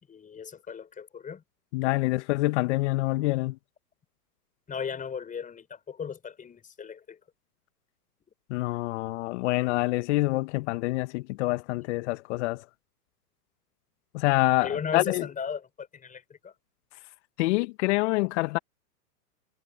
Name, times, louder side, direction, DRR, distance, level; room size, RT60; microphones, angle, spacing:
voice 1, 0.1-1.4 4.7-7.2 14.6-16.5, left 7 dB, 15° left, 5.0 m, -36 dB
voice 2, 1.7-3.6 8.5-12.6 14.1-15.2 17.4-18.6, left 21 dB, 45° left, 1.3 m, -26 dB
hypercardioid pair, 120°, 48 cm